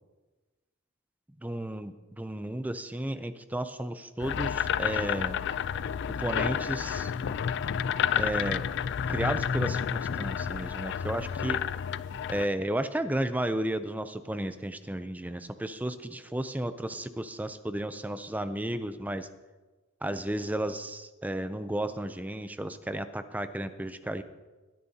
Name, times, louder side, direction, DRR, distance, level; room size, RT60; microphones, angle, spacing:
voice 1, 1.4-5.4 6.2-7.1 8.2-8.6 9.1-11.6 12.3-19.3 20.0-24.2, right 1 dB, 10° right, 11 dB, 0.4 m, -33 dB
sound 1, 4.2-12.5, left 8 dB, 60° left, 0.3 m, -30 dB
21.5 x 10.0 x 2.8 m, 1.2 s
head